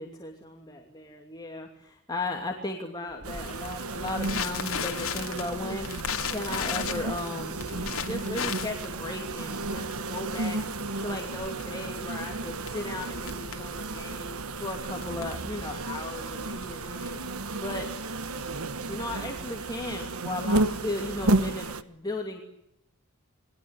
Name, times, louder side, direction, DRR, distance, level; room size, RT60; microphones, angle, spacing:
voice 1, 0.0-10.6 11.0-17.2 17.6-17.9 18.9-22.4, left 2 dB, 20° left, 2 dB, 2.7 m, -36 dB
Crackle, 3.2-17.4, left 7 dB, 70° left, 2.7 m, -37 dB
sound 1, 3.2-21.8, right 2 dB, 75° right, 1.4 m, -32 dB
28.5 x 21.5 x 8.2 m, 0.82 s
head